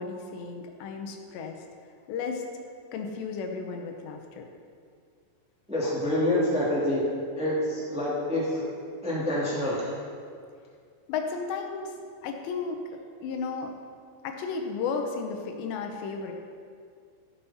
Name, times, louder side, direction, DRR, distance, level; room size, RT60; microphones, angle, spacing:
voice 1, 0.0-1.7 2.1-2.4 2.9-4.5 11.1-13.7 14.2-16.3, left 5 dB, 80° left, 3 dB, 3.0 m, -34 dB
voice 2, 5.7-7.0 7.3-8.7 9.0-9.9, left 1 dB, 10° right, -7 dB, 0.3 m, -27 dB
15.5 x 7.0 x 5.6 m, 2.2 s
omnidirectional pair, 5.1 m